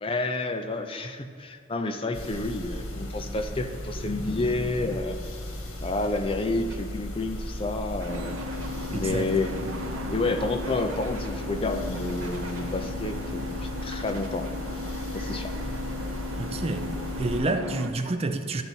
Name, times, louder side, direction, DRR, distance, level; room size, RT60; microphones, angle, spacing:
voice 1, 0.0-5.2 5.8-8.4 8.9-9.5 10.1-14.5 15.1-15.5, left 2 dB, 25° left, 7 dB, 0.5 m, -30 dB
sound 1, 2.1-17.4, equal, 80° left, 1.6 m, -36 dB
sound 2, 6.7-6.8 8.0-8.7 9.4-9.9 10.6-11.4 11.9-12.6 13.8-14.6, right 3 dB, 65° right, 1.6 m, -45 dB
sound 3, 8.1-17.9, left 2 dB, 85° right, 0.8 m, -36 dB
voice 2, 8.9-9.3 16.4-16.9 17.2-18.6, right 2 dB, 30° right, 7 dB, 0.4 m, -28 dB
12.0 x 4.0 x 7.2 m, 2.3 s
head